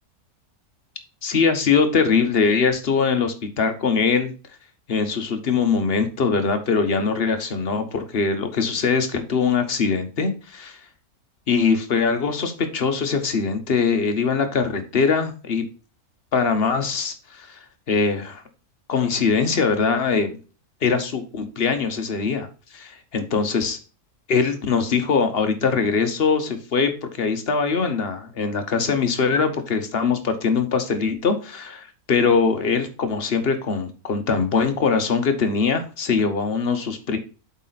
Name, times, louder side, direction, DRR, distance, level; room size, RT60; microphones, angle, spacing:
voice 1, 1.2-4.3 4.9-10.8 11.5-15.6 16.3-17.6 17.9-18.4 18.9-20.4 20.8-23.8 24.3-37.2, left 5 dB, 45° left, 8 dB, 1.1 m, -22 dB
8.2 x 4.2 x 4.0 m, 0.35 s
omnidirectional pair, 1.6 m